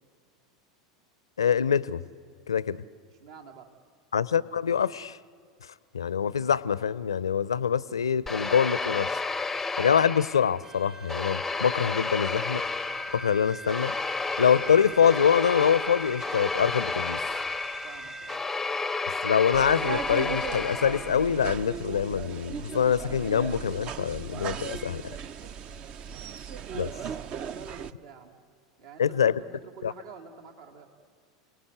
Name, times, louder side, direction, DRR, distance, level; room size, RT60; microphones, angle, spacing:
voice 1, 1.4-2.0 2.5-2.8 4.1-5.2 5.9-9.2 9.8-12.6 13.1-13.9 14.4-17.2 19.2-25.0 26.8-26.9 29.0-29.4 29.8-29.9, left 7 dB, 75° left, 21 dB, 0.5 m, -25 dB
voice 2, 3.2-3.7 17.8-18.4 26.7-28.4 28.8-30.9, right 5 dB, 65° right, 2 dB, 2.2 m, -47 dB
sound 1, 8.3-10.7 11.1-21.4, left 3 dB, 10° left, 0.6 m, -32 dB
sound 2, 10.6-18.4, right 2 dB, 20° right, 1.2 m, -42 dB
sound 3, 19.5-27.9, right 8 dB, 40° right, 0.6 m, -37 dB
29.0 x 18.5 x 8.0 m, 2.2 s
figure-of-eight pair, 80°, 3 cm